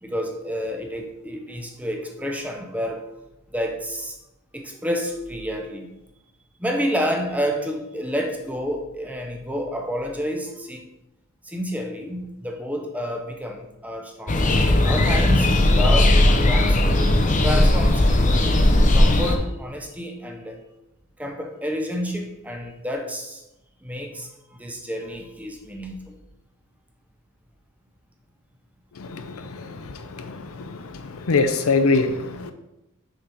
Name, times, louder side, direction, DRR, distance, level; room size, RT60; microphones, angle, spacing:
voice 1, 0.0-3.1 3.5-4.2 4.5-5.9 6.6-10.8 11.4-14.5 14.8-16.9 17.4-20.6 21.2-23.4 23.8-24.3 24.6-26.2, equal, 5° right, 3 dB, 0.7 m, -29 dB
sound 1, 14.3-19.4, left 1 dB, 35° left, 0.6 m, -17 dB
voice 2, 29.0-29.8 30.2-30.8 31.1-32.5, left 3 dB, 80° left, 9 dB, 0.6 m, -23 dB
6.5 x 4.2 x 4.6 m, 0.92 s
head